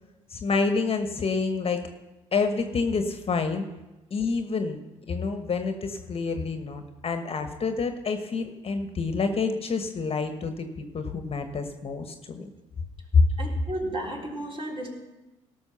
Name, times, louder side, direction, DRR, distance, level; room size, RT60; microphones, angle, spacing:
voice 1, 0.3-1.8 2.3-3.7 4.1-4.8 5.1-12.5 13.1-13.2, left 4 dB, 35° left, 7 dB, 1.2 m, -27 dB
voice 2, 13.4-14.9, right 1 dB, 30° right, -1 dB, 3.7 m, -33 dB
17.5 x 6.3 x 5.7 m, 1.0 s
hypercardioid pair, 55°, 17 cm